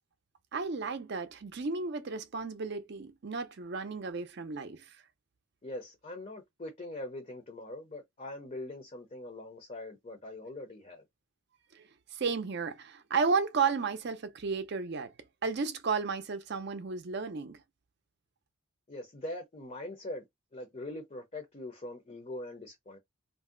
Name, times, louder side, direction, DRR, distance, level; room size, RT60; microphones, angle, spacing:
voice 1, 0.5-4.9 11.8-11.9 12.1-15.1 15.4-17.6, right 5 dB, 50° right, 0.5 m, -33 dB
voice 2, 5.6-11.0 18.9-20.2 20.5-23.0, left 1 dB, 30° left, 0.6 m, -42 dB
2.6 x 2.0 x 3.7 m
head